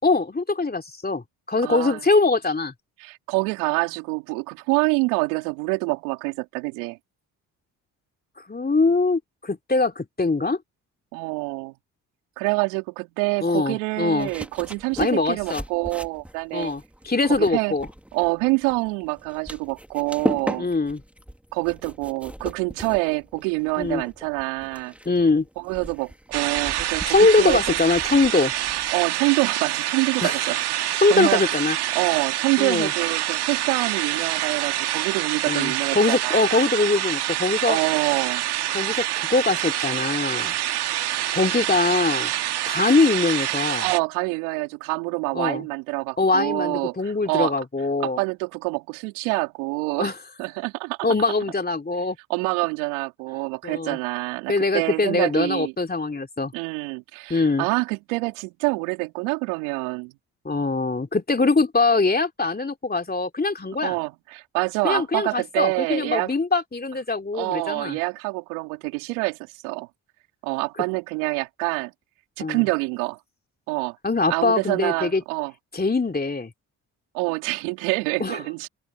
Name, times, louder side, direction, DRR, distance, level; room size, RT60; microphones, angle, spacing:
voice 1, 0.0-2.7 8.5-10.6 13.4-14.3 15.0-15.6 16.5-17.9 20.6-21.0 23.8-24.0 25.0-25.5 27.1-28.5 30.2-30.3 31.0-31.8 32.6-32.9 35.5-37.8 38.7-40.6 41.3-42.3 42.6-43.9 45.3-45.6 46.2-48.2 50.0-50.1 51.0-52.2 53.6-54.0 54.5-56.5 57.3-57.7 60.4-64.0 64.8-68.0 72.4-72.6 74.0-75.2 75.7-76.5 78.2-78.4, left 3 dB, 20° left, 3.0 m, -22 dB
voice 2, 1.6-2.0 3.0-7.0 11.1-11.7 12.4-16.7 17.3-17.7 18.1-20.7 21.5-24.9 25.6-27.8 28.9-31.6 31.9-36.7 37.6-38.4 43.8-47.5 48.0-50.1 50.4-51.1 52.3-55.7 56.5-60.1 63.8-66.3 67.3-69.4 69.6-69.9 70.4-71.9 72.4-73.2 73.7-74.0 74.3-75.5 77.1-78.7, right 29 dB, 80° right, 3.2 m, -26 dB
sound 1, 14.2-29.2, equal, 5° right, 2.4 m, -37 dB
sound 2, 26.3-44.0, right 13 dB, 65° right, 2.0 m, -26 dB
open air
hypercardioid pair, 45°, 43 cm